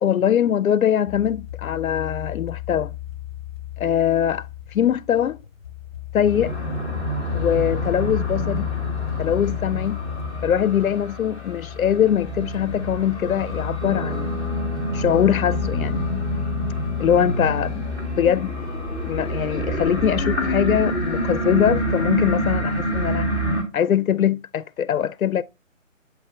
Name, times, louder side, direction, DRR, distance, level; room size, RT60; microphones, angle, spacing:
voice 1, 0.0-2.9 3.8-4.5 4.7-5.4 6.1-6.6 7.3-8.7 9.2-10.0 10.4-14.3 14.9-16.1 17.0-18.5 19.1-23.3 23.7-25.4, left 9 dB, 85° left, 0.5 m, -22 dB
sound 1, 1.1-19.5, left 14 dB, 45° left, 0.7 m, -32 dB
sound 2, 6.3-23.6, right 1 dB, 5° right, 0.9 m, -28 dB
sound 3, 13.8-19.6, right 4 dB, 65° right, 1.1 m, -38 dB
8.1 x 4.7 x 3.3 m
figure-of-eight pair, 155°, 40 cm